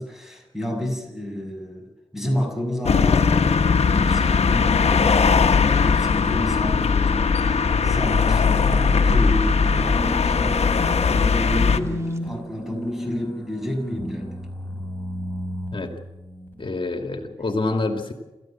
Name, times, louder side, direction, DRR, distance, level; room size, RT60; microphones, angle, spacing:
voice 1, 0.0-14.4, equal, 5° right, 3 dB, 7.1 m, -30 dB
sound 1, 2.9-11.8, left 5 dB, 80° left, 1.1 m, -19 dB
sound 2, 3.2-12.2, right 1 dB, 25° right, 3.3 m, -38 dB
sound 3, 7.4-17.3, left 1 dB, 20° left, 3.9 m, -33 dB
voice 2, 16.6-18.1, left 3 dB, 50° left, 5 dB, 2.4 m, -27 dB
28.5 x 14.5 x 7.5 m, 1.1 s
wide cardioid pair, 70°, 11 cm